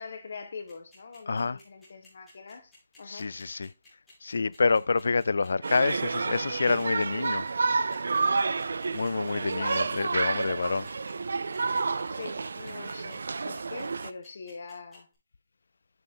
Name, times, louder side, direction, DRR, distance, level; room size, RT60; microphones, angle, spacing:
voice 1, 0.0-2.7 3.0-3.3 9.6-9.9 12.1-15.1, left 5 dB, 50° left, 1.2 m, -43 dB
sound 1, 0.7-15.1, left 3 dB, 5° left, 2.8 m, -56 dB
voice 2, 1.3-1.6 3.0-3.7 4.2-7.5 8.9-10.9, left 4 dB, 75° left, 0.3 m, -27 dB
sound 2, 5.6-14.1, right 4 dB, 70° right, 0.4 m, -30 dB
7.6 x 6.1 x 3.7 m
hypercardioid pair, 175°, 0 cm